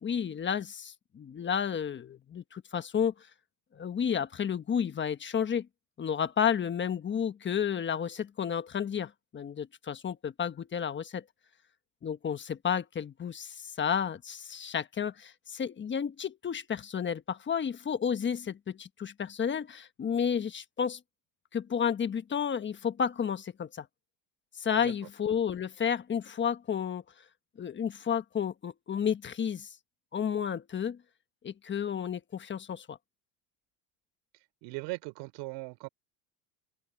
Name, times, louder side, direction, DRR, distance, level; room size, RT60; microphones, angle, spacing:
voice 1, 0.0-3.1 3.7-5.7 6.0-11.2 12.0-21.0 21.5-23.9 24.5-27.0 27.6-29.7 30.1-31.0 31.4-33.0, left 7 dB, 25° left, 1.3 m, -31 dB
voice 2, 34.6-35.9, right 25 dB, 70° right, 4.4 m, -39 dB
supercardioid pair, 120°, 44 cm